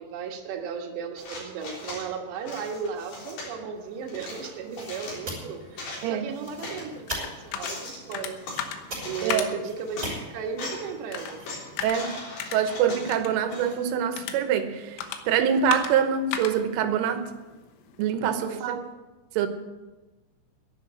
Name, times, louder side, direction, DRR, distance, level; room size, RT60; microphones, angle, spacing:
voice 1, 0.0-8.4 9.0-11.4 18.4-18.8, right 6 dB, 70° right, 3 dB, 3.5 m, -35 dB
sound 1, 1.2-2.1 2.5-3.5 4.1-5.2 5.6-6.8 7.4-8.6 9.0-9.4 9.8-10.1 10.5-10.9 11.1-13.8, left 2 dB, 60° left, 5.6 m, -39 dB
sound 2, 3.7-11.8, right 1 dB, 20° right, 4.8 m, -42 dB
sound 3, 6.5-18.1, left 8 dB, 80° left, 3.5 m, -38 dB
voice 2, 12.5-15.0 15.3-17.2 18.0-18.8 19.4-19.5, right 8 dB, 90° right, 8 dB, 3.6 m, -24 dB
11.0 x 11.0 x 8.2 m, 1.2 s
omnidirectional pair, 5.5 m